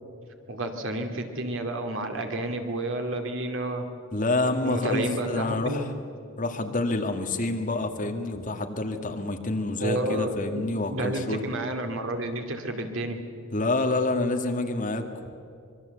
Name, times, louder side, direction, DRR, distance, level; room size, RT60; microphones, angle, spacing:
voice 1, 0.5-3.9 4.6-5.8 9.8-10.6 10.9-13.2, right 1 dB, 65° right, 5 dB, 2.6 m, -30 dB
voice 2, 4.1-5.9 6.4-11.4 13.5-15.1, left 2 dB, 40° left, 5 dB, 1.9 m, -27 dB
25.0 x 22.5 x 8.1 m, 2.4 s
head